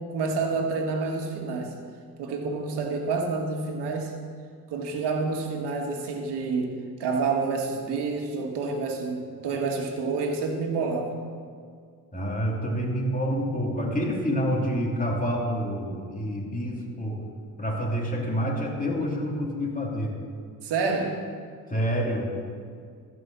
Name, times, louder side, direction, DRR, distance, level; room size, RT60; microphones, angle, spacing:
voice 1, 0.0-1.7 2.2-4.1 4.7-6.7 7.0-11.1 20.6-21.2, right 4 dB, 75° right, 3 dB, 1.7 m, -28 dB
voice 2, 12.1-17.2 17.6-20.2 21.7-22.3, equal, 20° left, -2 dB, 3.0 m, -28 dB
14.5 x 5.5 x 6.9 m, 2.1 s
supercardioid pair, 55°, 41 cm